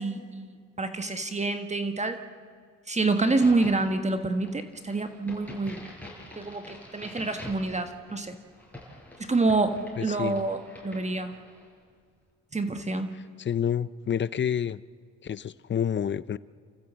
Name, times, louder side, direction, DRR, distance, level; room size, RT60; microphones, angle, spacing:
voice 1, 0.0-2.2 2.9-5.9 6.4-8.4 9.2-11.3 12.5-13.1, right 3 dB, 25° right, 8 dB, 1.5 m, -27 dB
Crack, 3.2-11.7, left 1 dB, 5° left, 6.8 m, -46 dB
voice 2, 10.0-10.4 13.4-14.8 15.2-16.4, left 8 dB, 40° left, 18 dB, 0.7 m, -28 dB
29.5 x 14.5 x 7.6 m, 2.1 s
cardioid pair, 90°, 30 cm